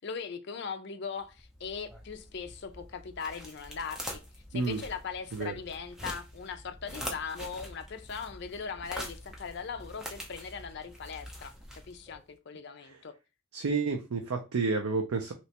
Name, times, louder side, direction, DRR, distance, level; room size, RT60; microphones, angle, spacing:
voice 1, 0.0-4.2 4.5-11.5 11.9-13.1, left 5 dB, 50° left, 0.4 m, -39 dB
sound 1, 1.2-12.2, equal, 5° right, 0.5 m, -45 dB
voice 2, 13.5-15.3, right 4 dB, 85° right, 0.5 m, -30 dB
3.2 x 2.9 x 2.8 m
head